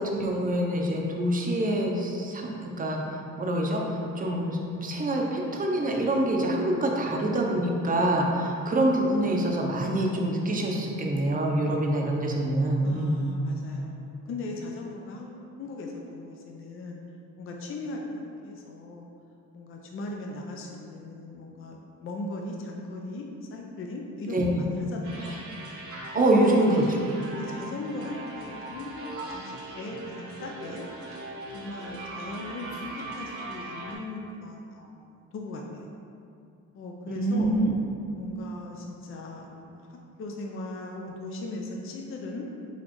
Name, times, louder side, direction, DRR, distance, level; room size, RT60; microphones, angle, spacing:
voice 1, 0.0-3.0 3.4-3.8 4.2-13.3 24.3-24.5 26.1-26.7 37.1-37.7, right 1 dB, 30° right, 0 dB, 0.7 m, -25 dB
voice 2, 12.8-17.0 17.4-19.1 19.5-25.4 26.1-26.7 27.3-30.8 31.5-35.9 36.7-37.6 38.1-42.5, left 2 dB, 45° left, 0 dB, 0.5 m, -38 dB
sound 1, 25.0-33.9, right 2 dB, 50° right, 0.9 m, -40 dB
4.1 x 3.7 x 3.0 m, 2.5 s
cardioid pair, 90°, 30 cm